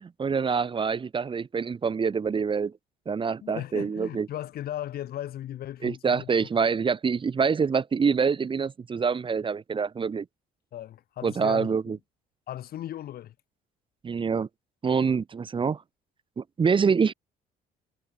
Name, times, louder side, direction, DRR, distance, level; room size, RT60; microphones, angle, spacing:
voice 1, 0.0-2.7 3.0-4.3 5.8-10.2 11.2-12.0 14.0-14.5 14.8-15.8 16.4-17.1, right 5 dB, 30° right, 1.6 m, -26 dB
voice 2, 3.4-6.3 10.7-12.0 12.5-13.3, left 12 dB, 65° left, 7.7 m, -37 dB
cardioid pair, 110°, 17 cm